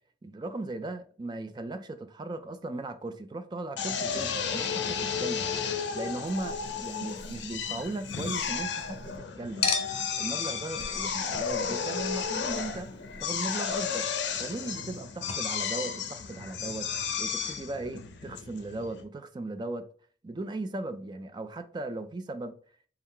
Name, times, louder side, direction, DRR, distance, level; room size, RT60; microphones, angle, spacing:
voice 1, 0.2-5.5 5.9-9.7 10.2-14.1 14.4-19.9 20.2-22.5, right 2 dB, 25° right, 0.3 m, -37 dB
Drill, 3.8-19.0, left 6 dB, 80° left, 0.5 m, -33 dB
Chink clink, 6.2-9.2 9.6-15.0 15.3-15.4, left 5 dB, 35° left, 0.6 m, -38 dB
4.2 x 2.3 x 3.6 m
head